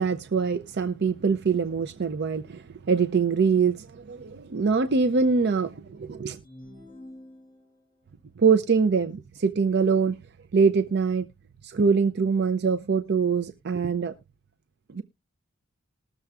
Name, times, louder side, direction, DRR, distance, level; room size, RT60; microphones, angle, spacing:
voice 1, 0.0-6.4 8.4-10.2 10.5-11.3 11.6-14.1 14.9-15.0, right 5 dB, 55° right, 0.5 m, -24 dB
sound 1, 6.4-8.0, left 1 dB, 20° left, 7.4 m, -47 dB
20.0 x 6.8 x 2.3 m
head